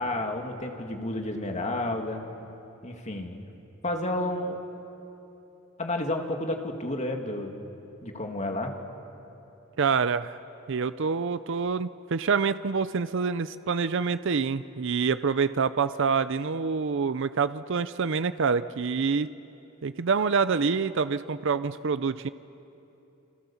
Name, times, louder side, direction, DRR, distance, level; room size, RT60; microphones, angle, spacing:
voice 1, 0.0-2.2 2.8-3.4 3.8-4.6 5.8-7.5 8.0-8.7, left 1 dB, 35° left, 3 dB, 2.4 m, -31 dB
voice 2, 9.8-10.4 10.7-19.3 19.8-22.3, right 5 dB, 65° right, 13 dB, 0.6 m, -26 dB
29.5 x 25.5 x 7.2 m, 2.9 s
head